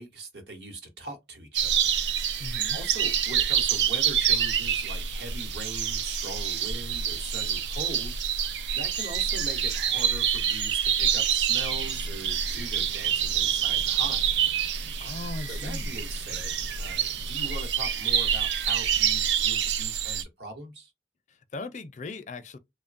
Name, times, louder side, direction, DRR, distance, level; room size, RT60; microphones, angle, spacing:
voice 1, 0.0-2.3 2.7-14.3 15.5-20.9, right 1 dB, 70° right, 1.0 m, -41 dB
sound 1, 1.6-20.2, right 8 dB, 85° right, 0.4 m, -27 dB
voice 2, 2.4-2.8 15.0-16.0 21.3-22.6, left 3 dB, 45° left, 0.4 m, -38 dB
sound 2, 11.7-17.3, right 1 dB, 35° right, 0.7 m, -48 dB
3.0 x 2.2 x 2.5 m
head